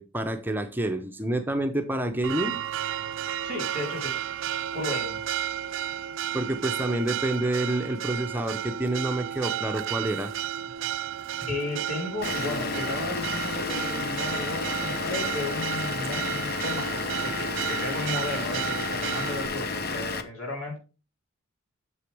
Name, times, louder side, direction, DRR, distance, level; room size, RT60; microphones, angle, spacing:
voice 1, 0.0-2.6 6.3-10.3, right 1 dB, 10° right, 6 dB, 0.6 m, -28 dB
Church bell, 2.2-19.5, right 10 dB, 60° right, 0.4 m, -33 dB
voice 2, 3.4-4.2 4.7-5.2 11.5-20.8, left 2 dB, 80° left, 0 dB, 3.8 m, -34 dB
Vehicle / Engine, 12.2-20.2, left 4 dB, 45° left, 0.8 m, -31 dB
8.1 x 6.9 x 3.4 m, 0.32 s
head